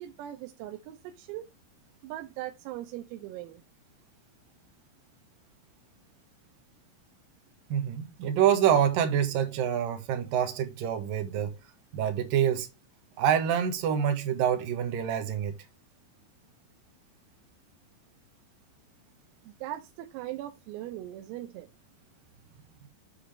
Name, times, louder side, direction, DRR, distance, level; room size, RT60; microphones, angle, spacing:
voice 1, 0.0-1.5 2.0-3.6 19.5-21.7, right 13 dB, 85° right, 3.7 m, -40 dB
voice 2, 7.7-11.6 11.9-12.7 13.2-15.5, right 9 dB, 65° right, 2.3 m, -26 dB
8.3 x 7.9 x 3.3 m
omnidirectional pair, 6.0 m